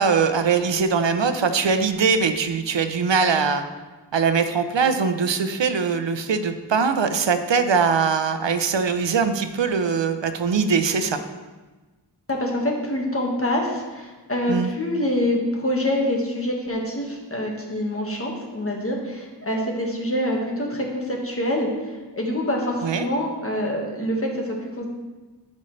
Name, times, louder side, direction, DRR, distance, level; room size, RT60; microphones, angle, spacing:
voice 1, 0.0-3.6 4.1-11.2 14.5-14.7 22.8-23.1, right 5 dB, 85° right, 8 dB, 0.7 m, -21 dB
voice 2, 12.3-24.9, left 1 dB, 30° left, -1 dB, 1.6 m, -26 dB
12.5 x 5.4 x 3.2 m, 1.2 s
wide cardioid pair, 75°, 43 cm